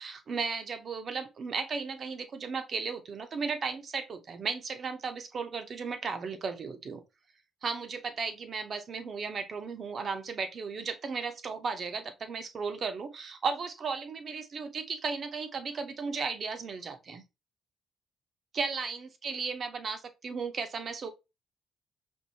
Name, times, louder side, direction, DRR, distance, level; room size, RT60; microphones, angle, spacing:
voice 1, 0.0-7.0 7.6-17.2 18.5-21.1, right 5 dB, 50° right, 0.7 m, -35 dB
4.5 x 2.7 x 2.7 m
cardioid pair, 90°, 0 cm